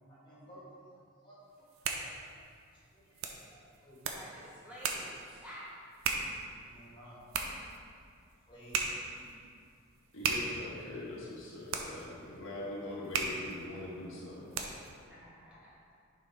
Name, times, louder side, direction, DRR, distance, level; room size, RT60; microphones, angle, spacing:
voice 1, 0.1-1.4 1.9-2.4 2.9-4.0 6.6-7.3 8.5-9.4, right 1 dB, 20° left, -7 dB, 1.7 m, -55 dB
sound 1, 1.5-15.0, right 4 dB, 70° right, 0.6 m, -39 dB
voice 2, 4.1-5.7 15.1-15.8, equal, 5° right, -8 dB, 0.9 m, -50 dB
voice 3, 10.1-14.6, left 2 dB, 60° left, -5 dB, 1.4 m, -42 dB
7.1 x 4.4 x 4.7 m, 2.3 s
head